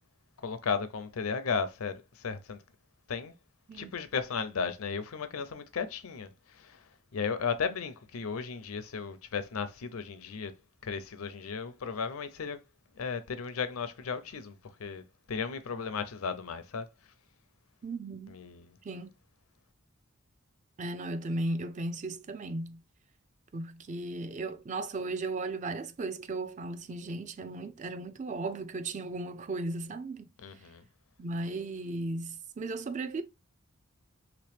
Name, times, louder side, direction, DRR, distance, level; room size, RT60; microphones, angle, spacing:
voice 1, 0.4-2.6 3.1-3.3 3.7-6.8 7.1-10.5 10.8-12.6 13.0-14.5 14.8-15.0 15.3-16.9 18.3-18.7 30.4-30.8, left 5 dB, 85° left, 0.6 m, -35 dB
voice 2, 17.8-18.3 18.8-19.1 20.8-22.8 23.5-30.3 31.2-33.2, right 2 dB, 35° right, 0.4 m, -36 dB
3.1 x 3.0 x 3.3 m
head